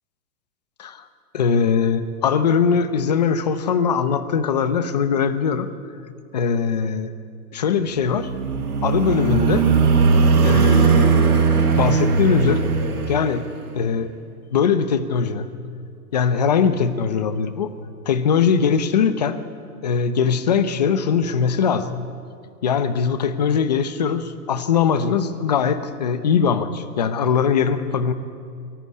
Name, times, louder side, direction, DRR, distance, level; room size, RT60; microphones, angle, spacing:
voice 1, 1.3-5.7 6.3-7.1 7.5-8.3 8.8-9.7 10.4-11.3 11.7-12.7 13.1-13.4 13.7-14.1 14.5-15.5 16.1-17.7 18.1-19.4 19.8-21.9 22.6-28.1, left 6 dB, 25° left, 12 dB, 0.7 m, -21 dB
sound 1, 8.0-13.7, right 5 dB, 70° right, 5.0 m, -18 dB
23.5 x 17.0 x 9.5 m, 2.4 s
hypercardioid pair, 180°, 47 cm